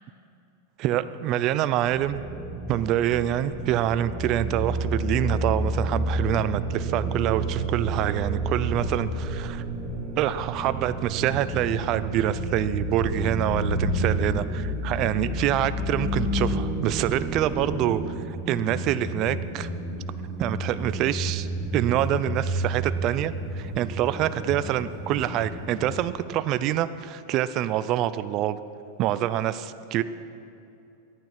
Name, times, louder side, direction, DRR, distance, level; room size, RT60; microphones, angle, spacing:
voice 1, 0.8-2.2 2.7-9.6 10.2-18.0 18.3-19.7 20.4-21.5 21.7-28.6 29.0-30.0, right 12 dB, 45° right, 14 dB, 0.4 m, -26 dB
sound 1, 1.8-18.1, right 1 dB, 25° right, 1.7 m, -29 dB
sound 2, 6.4-8.0 8.3-26.1, right 2 dB, 15° left, 1.6 m, -35 dB
14.0 x 9.4 x 5.9 m, 2.7 s
hypercardioid pair, 120°, 0 cm